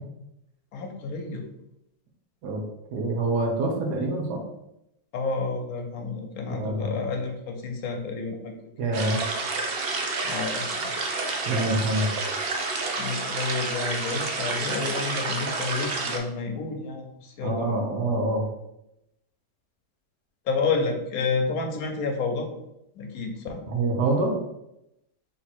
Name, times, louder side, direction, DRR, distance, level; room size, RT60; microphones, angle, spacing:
voice 1, 0.7-1.5 5.1-8.6 10.2-10.9 13.0-17.8 20.5-22.5 23.0-23.6, left 4 dB, 70° left, 4 dB, 1.1 m, -30 dB
voice 2, 2.9-4.4 6.5-7.0 8.8-9.2 11.5-12.1 17.4-18.4 23.7-24.3, right 2 dB, 85° right, 1 dB, 1.5 m, -26 dB
sound 1, 8.9-16.2, right 3 dB, 60° right, 0.6 m, -29 dB
3.5 x 2.9 x 4.2 m, 0.84 s
omnidirectional pair, 1.7 m